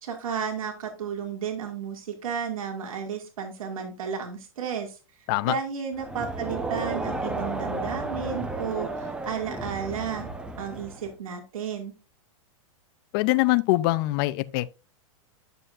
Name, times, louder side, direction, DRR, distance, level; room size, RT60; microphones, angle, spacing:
voice 1, 0.0-5.0 5.4-10.3 10.6-11.9, right 7 dB, 80° right, 2.2 m, -33 dB
Crowd, 6.0-11.1, right 2 dB, 5° right, 0.8 m, -33 dB
voice 2, 13.1-14.8, left 19 dB, 40° left, 0.5 m, -23 dB
10.5 x 6.9 x 2.5 m
hypercardioid pair, 140°, 17 cm